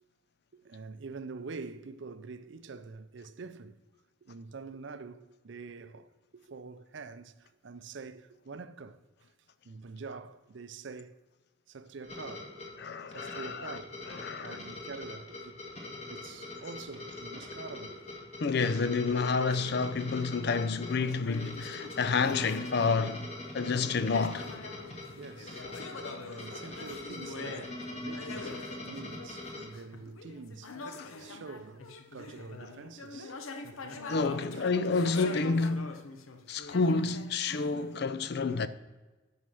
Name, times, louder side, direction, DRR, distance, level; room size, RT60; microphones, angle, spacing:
voice 1, 0.5-3.8 4.2-9.3 9.6-11.1 11.7-12.6 13.1-14.0 14.4-15.7 16.1-18.2 25.2-25.7 26.2-30.8 31.2-33.4 33.7-33.8 34.5-34.7, right 4 dB, 60° right, 0.5 m, -46 dB
sound 1, 12.0-29.7, left 2 dB, 30° left, 1.9 m, -43 dB
voice 2, 12.8-13.8 14.1-14.6 18.4-23.3 23.5-24.5 31.0-31.1 34.1-36.0 36.5-38.7, left 4 dB, 50° left, 0.5 m, -29 dB
sound 2, 19.5-20.3 20.9-23.4 23.7-38.0, left 3 dB, 80° left, 0.8 m, -44 dB
9.5 x 5.6 x 6.3 m
head